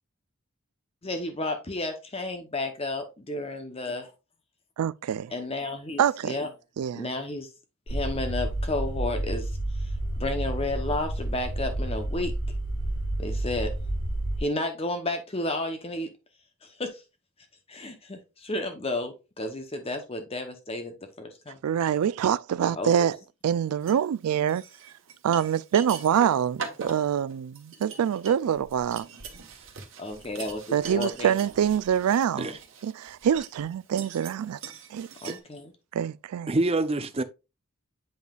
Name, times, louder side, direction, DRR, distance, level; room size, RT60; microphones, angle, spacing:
voice 1, 1.0-4.1 5.3-6.5 6.9-7.5 7.9-9.5 9.8-9.9 10.2-12.3 13.2-13.8 14.4-16.1 16.6-17.0 17.7-21.6 22.7-23.1 30.0-31.3 32.4-32.5 35.2-35.7, left 2 dB, 25° left, 0.8 m, -32 dB
voice 2, 4.8-5.3 6.0-6.4 6.8-7.1 21.6-23.2 23.4-24.6 25.2-29.1 30.7-32.5 32.8-34.6 34.9-35.1 35.9-36.5, right 9 dB, 85° right, 0.3 m, -25 dB
sound 1, 7.9-14.4, right 1 dB, 90° left, 3.6 m, -30 dB
sound 2, 23.8-24.0 24.5-35.4, right 5 dB, 60° right, 1.3 m, -42 dB
voice 3, 36.5-37.2, right 2 dB, 25° right, 0.5 m, -26 dB
7.8 x 5.4 x 2.4 m
head